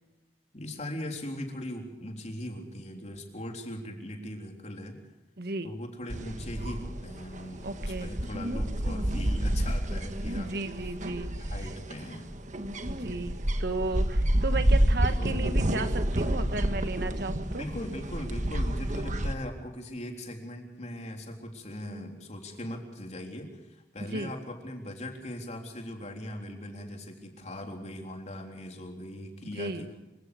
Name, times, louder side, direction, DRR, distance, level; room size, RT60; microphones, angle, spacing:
voice 1, 0.5-5.0 5.6-10.5 11.4-12.3 15.1-15.4 17.6-23.7 23.9-29.9, left 1 dB, 40° left, 3 dB, 3.7 m, -39 dB
voice 2, 5.4-5.7 7.6-8.1 10.3-11.7 12.9-17.6 24.1-24.3 29.6-29.8, right 2 dB, 65° right, 9 dB, 1.6 m, -34 dB
sound 1, 6.1-19.3, right 1 dB, 45° right, 1.5 m, -29 dB
26.5 x 16.5 x 6.9 m, 0.98 s
head